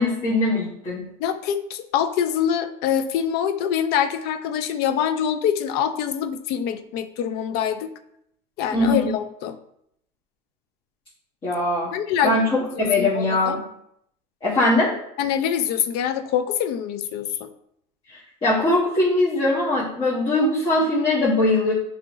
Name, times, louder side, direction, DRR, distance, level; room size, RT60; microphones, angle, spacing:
voice 1, 0.0-1.0 8.7-9.1 11.4-11.9 12.2-13.6 14.4-14.9 18.1-21.7, left 2 dB, 30° left, -8 dB, 1.4 m, -21 dB
voice 2, 1.2-7.9 8.6-9.6 11.9-12.4 12.8-13.6 15.2-17.5, left 9 dB, 60° left, 10 dB, 0.5 m, -25 dB
5.9 x 2.9 x 3.0 m, 0.73 s
supercardioid pair, 115°, 18 cm